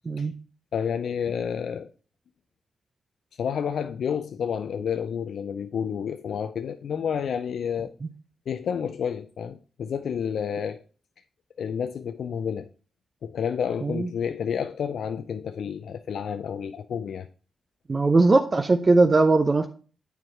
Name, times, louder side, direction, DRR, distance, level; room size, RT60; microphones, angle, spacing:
voice 1, 0.7-1.9 3.4-7.9 8.5-10.8 11.6-12.7 13.2-17.3, left 7 dB, 75° left, 0.4 m, -30 dB
voice 2, 17.9-19.7, right 3 dB, 40° right, 0.7 m, -20 dB
8.0 x 4.7 x 4.4 m
supercardioid pair, 40°, 0 cm